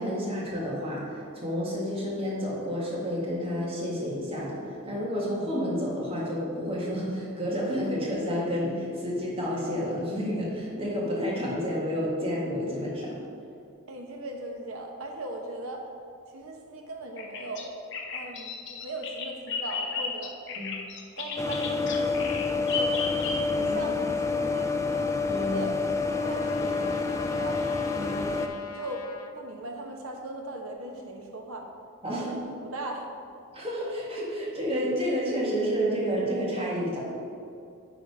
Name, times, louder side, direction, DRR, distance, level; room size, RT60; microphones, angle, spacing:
voice 1, 0.0-13.1 20.6-20.7 23.6-23.7 25.3-25.6 28.0-28.2 32.0-32.5 33.5-37.0, equal, 25° right, -5 dB, 1.7 m, -30 dB
voice 2, 13.9-15.9 16.3-17.7 18.1-20.4 21.2-23.1 23.4-25.1 25.4-25.7 26.1-27.6 28.0-28.4 28.7-29.1 29.3-31.7 32.0-32.4 32.6-33.1, right 1 dB, 70° right, 2 dB, 1.0 m, -39 dB
Bird vocalization bird call bird song, 17.2-23.7, left 4 dB, 55° left, 0.8 m, -34 dB
sound 1, 21.4-28.5, left 4 dB, 15° left, 0.3 m, -28 dB
Trumpet, 24.8-29.3, left 5 dB, 85° left, 0.6 m, -44 dB
9.8 x 3.9 x 4.8 m, 2.5 s
head